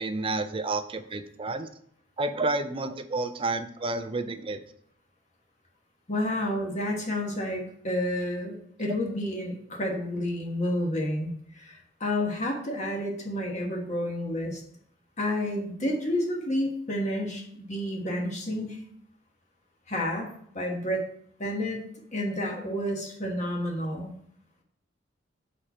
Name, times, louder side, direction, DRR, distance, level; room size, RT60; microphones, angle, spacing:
voice 1, 0.0-1.7 2.2-4.6, right 2 dB, 30° right, 9 dB, 0.5 m, -30 dB
voice 2, 6.1-14.6 15.2-18.8 19.9-21.0 21.4-24.1, left 1 dB, 40° left, 0 dB, 1.3 m, -30 dB
4.9 x 4.3 x 5.8 m, 0.65 s
head